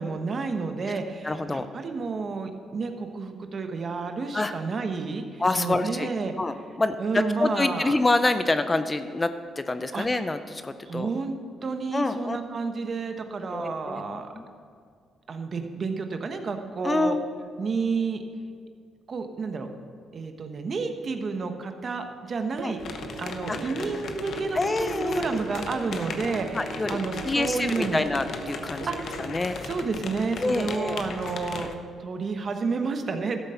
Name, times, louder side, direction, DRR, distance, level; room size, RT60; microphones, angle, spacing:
voice 1, 0.0-6.3 7.0-7.9 9.9-10.1 10.9-11.3 11.6-14.3 15.3-17.2 17.6-18.2 19.1-19.7 20.1-22.8 23.2-26.6 26.9-28.0 28.9-29.2 29.6-31.7 32.0-33.4, right 4 dB, 45° right, 6 dB, 1.1 m, -30 dB
voice 2, 1.2-1.7 4.3-4.5 5.4-6.1 6.4-11.1 11.9-12.4 13.5-14.5 16.8-17.2 22.6-22.7 23.5-23.6 23.8-23.9 24.5-25.4 25.7-25.8 26.5-26.9 27.2-28.9 29.2-29.6 30.4-31.0, left 2 dB, 20° left, 10 dB, 0.5 m, -27 dB
sound 1, 22.6-29.4, right 8 dB, 85° right, 0.7 m, -40 dB
sound 2, 22.8-31.7, left 4 dB, 65° left, 0.8 m, -37 dB
13.0 x 7.6 x 5.7 m, 2.1 s
cardioid pair, 90°, 0 cm